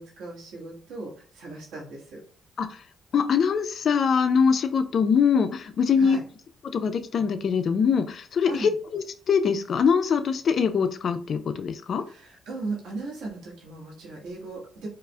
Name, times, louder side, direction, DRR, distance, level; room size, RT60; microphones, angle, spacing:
voice 1, 0.0-2.2 6.0-6.2 8.4-8.7 12.1-14.9, right 3 dB, 85° right, -4 dB, 1.5 m, -37 dB
voice 2, 3.1-6.2 6.7-12.0, left 6 dB, 55° left, 10 dB, 0.4 m, -23 dB
4.6 x 2.4 x 2.3 m, 0.44 s
cardioid pair, 90°, 0 cm